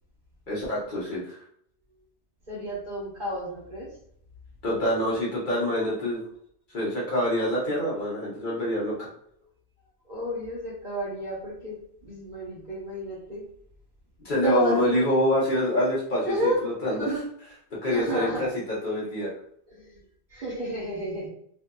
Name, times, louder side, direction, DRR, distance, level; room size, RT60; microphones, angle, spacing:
voice 1, 0.5-1.4 4.6-6.2 6.7-9.1 14.2-16.3 16.6-17.0 17.8-19.3, equal, 50° left, -6 dB, 1.0 m, -26 dB
voice 2, 2.5-3.9 10.0-13.4 14.4-15.0 16.2-16.6 17.0-17.3 17.9-18.5 19.7-20.0 20.3-21.3, right 1 dB, 45° right, -5 dB, 0.9 m, -31 dB
2.7 x 2.5 x 2.2 m, 0.66 s
omnidirectional pair, 1.1 m